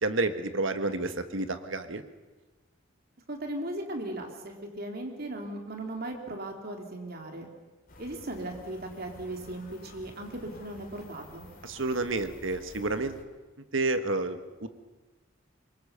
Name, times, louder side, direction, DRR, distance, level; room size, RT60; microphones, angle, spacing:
voice 1, 0.0-2.0 11.6-13.2 13.7-14.7, right 2 dB, 75° right, 9 dB, 1.4 m, -30 dB
voice 2, 3.3-7.5 8.0-11.5, right 1 dB, 50° right, 3 dB, 3.2 m, -37 dB
sound 1, 7.9-13.2, left 1 dB, 45° left, 3.3 m, -51 dB
24.5 x 22.5 x 6.8 m, 1.2 s
head